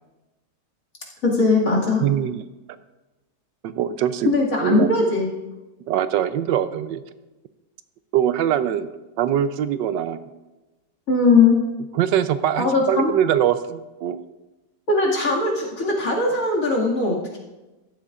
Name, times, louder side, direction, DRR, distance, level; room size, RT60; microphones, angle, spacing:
voice 1, 1.2-2.0 4.2-5.3 11.1-11.6 12.6-13.1 14.9-17.4, left 3 dB, 50° left, -3 dB, 2.5 m, -19 dB
voice 2, 2.0-2.4 3.6-4.3 4.6-4.9 5.9-7.0 8.1-8.9 9.2-10.2 11.9-14.2, right 10 dB, 85° right, 12 dB, 1.3 m, -22 dB
14.5 x 12.0 x 2.5 m, 1.1 s
omnidirectional pair, 1.9 m